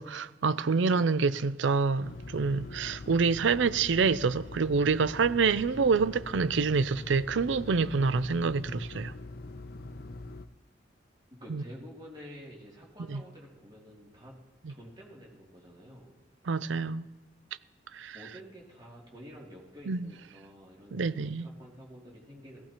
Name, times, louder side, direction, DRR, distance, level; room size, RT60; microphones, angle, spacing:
voice 1, 0.0-9.1 11.5-11.6 13.1-13.2 16.5-17.1 17.9-18.2 19.9-20.1 20.9-21.5, right 4 dB, 80° right, 0.5 m, -27 dB
sound 1, 2.0-10.5, left 2 dB, 55° left, 0.5 m, -43 dB
voice 2, 11.4-14.4 14.7-16.1 18.1-22.6, equal, 25° right, 2.7 m, -49 dB
17.5 x 14.5 x 2.9 m
head